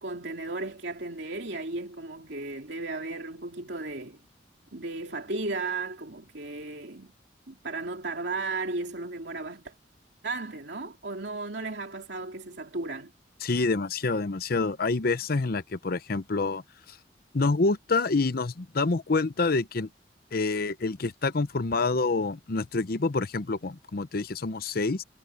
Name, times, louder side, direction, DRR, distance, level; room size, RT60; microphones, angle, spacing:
voice 1, 0.0-4.2 4.7-7.1 7.5-9.7 10.2-13.1, right 3 dB, 65° right, 2.9 m, -35 dB
voice 2, 13.4-16.6 16.9-17.0 17.3-19.9 20.3-25.0, left 3 dB, 55° left, 0.7 m, -27 dB
head